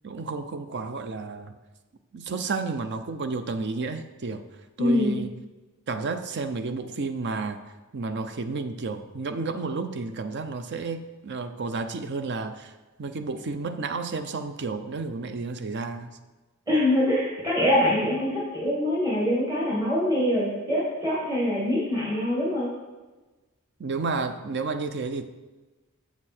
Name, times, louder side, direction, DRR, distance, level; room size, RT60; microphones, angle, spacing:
voice 1, 0.0-1.6 2.1-4.4 4.8-5.4 5.9-7.6 7.9-12.7 13.0-16.2 23.8-25.3, right 3 dB, 55° right, 9 dB, 0.6 m, -31 dB
voice 2, 4.8-5.2 16.7-22.7, left 1 dB, 15° right, -6 dB, 1.8 m, -24 dB
7.1 x 6.7 x 4.4 m, 1.2 s
head